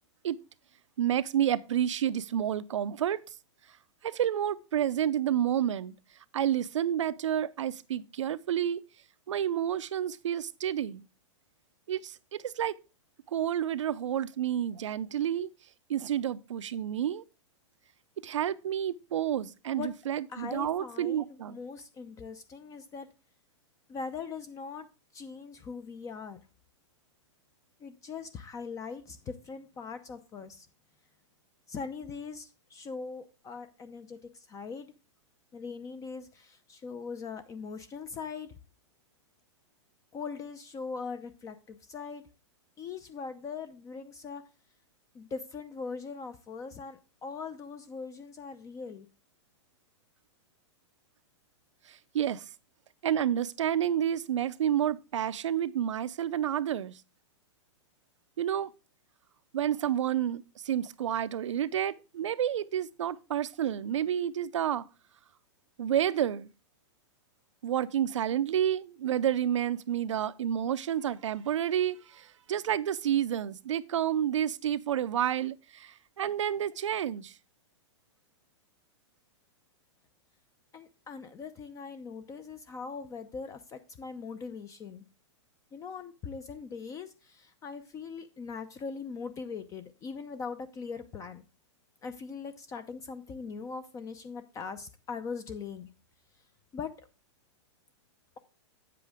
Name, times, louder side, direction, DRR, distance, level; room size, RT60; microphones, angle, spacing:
voice 1, 1.0-3.2 4.0-5.9 6.3-8.8 9.3-11.0 11.9-12.8 13.3-15.5 15.9-17.2 18.2-21.6 51.9-52.5 53.0-56.9 58.4-58.7 59.5-64.9 65.8-66.5 67.6-77.3, right 10 dB, 85° right, 0.6 m, -30 dB
voice 2, 20.3-23.1 23.9-24.9 25.1-26.4 27.8-30.7 31.7-34.9 35.5-38.5 40.1-42.2 42.8-44.4 45.1-49.1 80.7-85.0 85.7-91.4 92.0-95.9 96.7-96.9, left 5 dB, 20° left, 0.7 m, -41 dB
9.0 x 7.7 x 3.6 m
hypercardioid pair, 135°, 15 cm